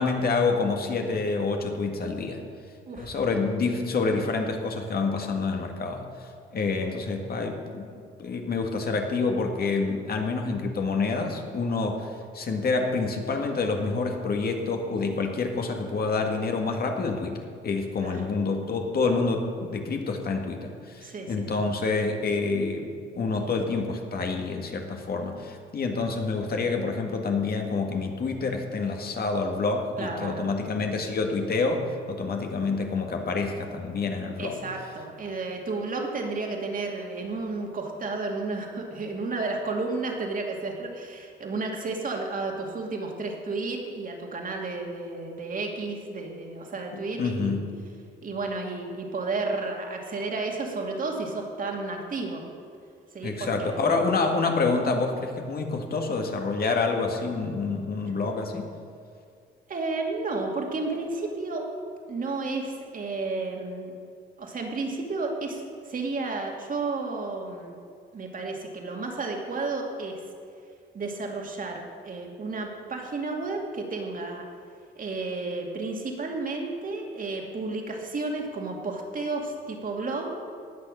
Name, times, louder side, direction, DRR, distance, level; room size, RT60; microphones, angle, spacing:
voice 1, 0.0-2.4 2.9-12.1 12.3-17.4 17.6-22.9 23.1-34.6 47.2-47.7 53.2-58.7, left 4 dB, 50° left, 3 dB, 1.9 m, -27 dB
voice 2, 21.0-21.5 30.0-30.5 34.4-47.6 48.2-52.4 53.1-53.9 59.7-61.7 62.1-64.0 64.4-67.8 68.1-70.2 70.9-74.5 75.0-80.4, right 3 dB, 45° right, 1 dB, 2.5 m, -32 dB
19.0 x 6.7 x 6.4 m, 2.3 s
cardioid pair, 90°, 20 cm